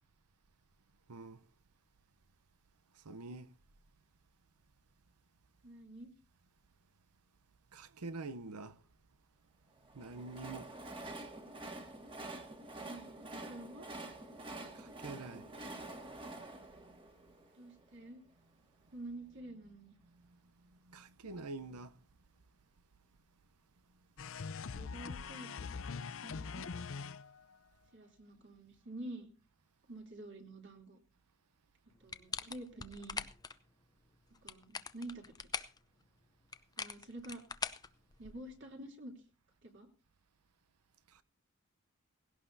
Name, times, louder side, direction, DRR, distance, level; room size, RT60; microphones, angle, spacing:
voice 1, 1.1-1.4 2.9-3.5 7.7-8.8 9.9-10.7 14.7-15.5 16.8-17.0 19.4-19.5 20.0-22.0 41.1-41.2, right 3 dB, 90° right, 0.8 m, -47 dB
voice 2, 5.6-6.1 12.8-13.9 17.5-18.2 18.9-19.9 24.7-26.6 27.9-29.3 29.9-31.0 32.0-33.2 34.4-35.7 36.8-37.4 38.2-39.1 39.6-39.9, right 1 dB, 55° right, 3.1 m, -49 dB
Train, 9.8-18.0, right 2 dB, 25° right, 1.7 m, -47 dB
sound 1, 24.2-27.6, left 5 dB, 60° left, 0.6 m, -43 dB
sound 2, 32.1-33.5 34.3-35.8 36.5-38.5, left 5 dB, 15° left, 0.5 m, -42 dB
18.0 x 17.0 x 2.7 m
head